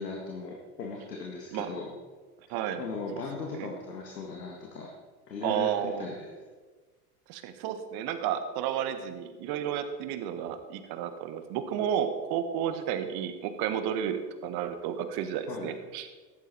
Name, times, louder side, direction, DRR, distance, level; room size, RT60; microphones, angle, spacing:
voice 1, 0.0-1.9 2.8-4.9 5.3-6.3 15.5-15.7, left 4 dB, 85° left, 0 dB, 1.9 m, -38 dB
voice 2, 2.5-2.8 3.1-3.2 3.5-3.7 5.4-6.1 7.3-16.1, right 9 dB, 50° right, 9 dB, 1.6 m, -32 dB
14.0 x 11.0 x 4.2 m, 1.4 s
hypercardioid pair, 80°, 47 cm